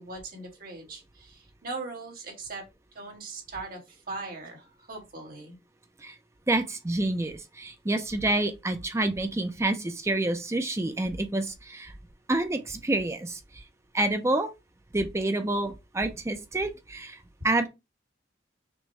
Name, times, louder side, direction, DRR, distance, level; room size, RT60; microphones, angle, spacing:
voice 1, 0.0-2.6 2.9-5.5, right 3 dB, 55° right, 1.6 m, -40 dB
voice 2, 6.5-11.9 12.3-13.4 13.9-14.5 14.9-17.2 17.4-17.7, right 2 dB, 15° right, 0.4 m, -28 dB
6.0 x 2.2 x 3.1 m
head